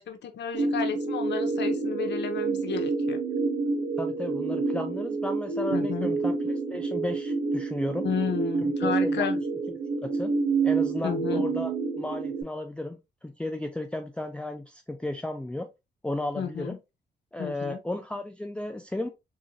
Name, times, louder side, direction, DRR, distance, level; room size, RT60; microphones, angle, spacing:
voice 1, 0.0-3.2 5.7-6.1 8.0-9.4 11.0-11.4 16.4-16.8 17.4-17.8, left 7 dB, 70° left, 0.8 m, -32 dB
sound 1, 0.5-12.4, right 4 dB, 70° right, 1.0 m, -28 dB
voice 2, 4.0-8.1 8.6-9.3 10.0-10.3 10.6-15.7 16.0-16.8 17.3-19.1, left 1 dB, 5° left, 0.4 m, -34 dB
3.9 x 2.4 x 2.7 m
supercardioid pair, 55°, 19 cm